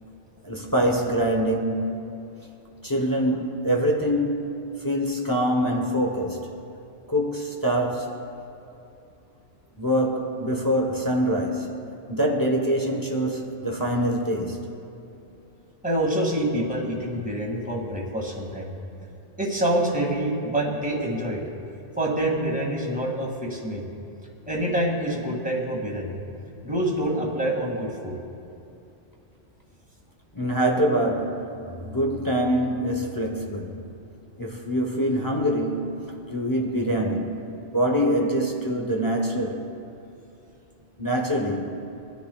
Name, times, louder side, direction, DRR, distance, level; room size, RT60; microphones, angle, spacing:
voice 1, 0.4-2.2 2.8-4.5 4.8-6.5 7.1-8.1 9.8-14.7 30.3-33.8 34.4-39.7 41.0-41.7, equal, 20° left, 0.9 m, -25 dB
voice 2, 15.8-18.7 19.4-21.4 22.0-23.8 24.5-26.2 26.6-28.2, right 1 dB, 5° right, 2.0 m, -26 dB
23.5 x 10.5 x 2.3 m
omnidirectional pair, 1.2 m